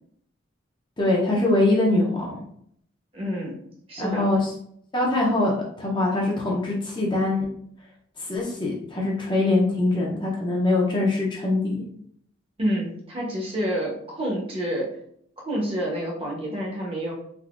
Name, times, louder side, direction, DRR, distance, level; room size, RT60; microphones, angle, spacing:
voice 1, 1.0-2.4 4.0-4.4 4.9-5.5 5.8-7.5 8.2-11.8, left 2 dB, 25° left, -3 dB, 0.6 m, -23 dB
voice 2, 3.1-3.6 3.9-4.3 12.6-15.0 15.4-17.1, equal, 30° right, -2 dB, 0.8 m, -28 dB
3.5 x 2.6 x 2.4 m, 0.67 s
head